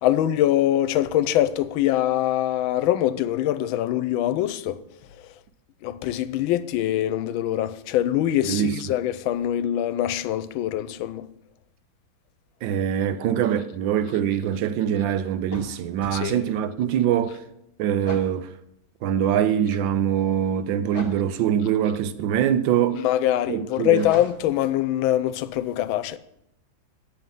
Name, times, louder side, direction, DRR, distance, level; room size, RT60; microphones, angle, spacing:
voice 1, 0.0-4.8 5.8-11.3 16.1-16.5 23.0-26.2, left 12 dB, 90° left, 1.4 m, -23 dB
voice 2, 8.5-8.8 12.6-17.4 17.8-18.5 19.0-23.0 23.5-24.1, right 9 dB, 75° right, 1.4 m, -23 dB
sound 1, 15.4-16.2 18.0-18.4 20.9-21.3 24.0-24.6, left 2 dB, 20° left, 1.4 m, -37 dB
9.4 x 7.5 x 5.4 m
omnidirectional pair, 2.1 m